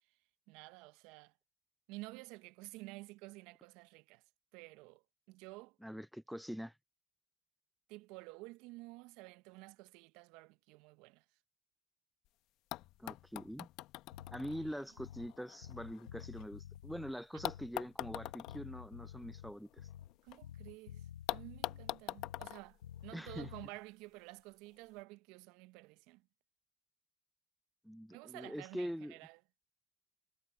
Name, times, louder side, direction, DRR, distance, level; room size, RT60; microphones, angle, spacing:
voice 1, 0.5-1.3 1.9-4.2 4.5-5.7 7.9-11.2 14.6-14.7 20.2-21.0 21.3-22.8 23.0-26.2 28.1-29.4, right 22 dB, 70° right, 1.0 m, -52 dB
voice 2, 5.8-6.7 13.0-13.7 14.3-19.9 23.1-23.5 27.8-29.1, equal, ahead, 0.7 m, -44 dB
sound 1, 12.3-12.4 12.7-16.8 17.4-20.4 20.7-20.8 21.3-23.7 24.7-24.8, left 16 dB, 65° left, 1.2 m, -45 dB
Bass guitar, 14.1-15.4 15.6-17.8 18.0-20.2 20.4-22.6 22.8-23.7, left 11 dB, 85° left, 0.4 m, -51 dB
hypercardioid pair, 65°, 0 cm